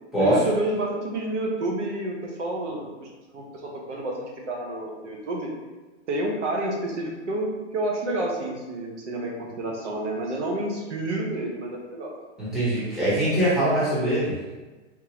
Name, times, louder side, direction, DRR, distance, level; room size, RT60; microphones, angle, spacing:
voice 1, 0.2-5.5 6.1-12.1, right 1 dB, 70° right, -1 dB, 1.0 m, -29 dB
voice 2, 12.4-14.3, right 1 dB, ahead, -12 dB, 0.9 m, -22 dB
3.8 x 2.7 x 2.9 m, 1.2 s
hypercardioid pair, 160°, 37 cm